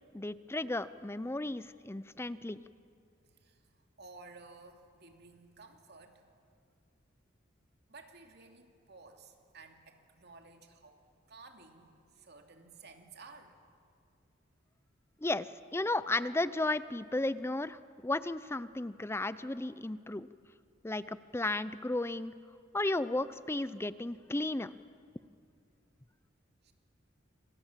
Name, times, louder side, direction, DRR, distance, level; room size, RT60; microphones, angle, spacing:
voice 1, 0.1-2.6 15.2-20.3 20.8-22.3 22.7-24.8, left 2 dB, 15° left, 15 dB, 0.5 m, -34 dB
voice 2, 4.0-6.2 7.9-11.0 11.3-13.6 26.6-26.7, right 3 dB, 60° right, 4 dB, 2.8 m, -54 dB
28.5 x 26.0 x 7.4 m, 2.4 s
head